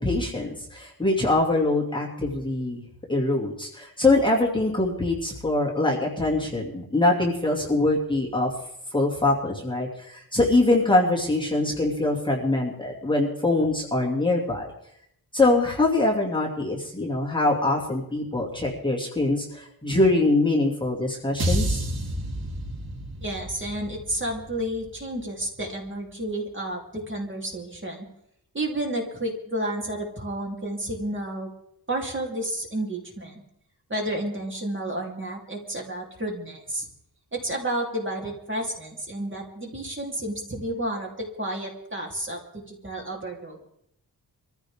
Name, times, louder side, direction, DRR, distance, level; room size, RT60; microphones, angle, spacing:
voice 1, 0.0-8.5 8.9-14.7 15.3-21.8, left 2 dB, 10° left, -3 dB, 2.5 m, -23 dB
sound 1, 21.4-25.7, right 1 dB, 65° right, 3.6 m, -30 dB
voice 2, 23.2-28.0 28.5-31.5 31.9-33.4 33.9-36.9 37.3-43.6, right 1 dB, 30° right, -1 dB, 3.4 m, -31 dB
24.0 x 15.0 x 3.7 m, 0.75 s
wide cardioid pair, 145°, 39 cm